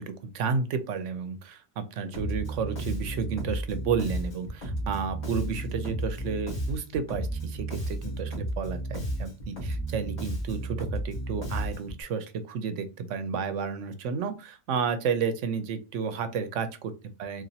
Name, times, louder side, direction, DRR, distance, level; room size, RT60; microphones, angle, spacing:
voice 1, 0.0-16.9 17.2-17.4, right 6 dB, 75° right, 10 dB, 0.9 m, -31 dB
Bass guitar, 2.1-12.0, right 1 dB, 35° left, 1.7 m, -33 dB
4.0 x 2.5 x 2.7 m, 0.31 s
omnidirectional pair, 1.3 m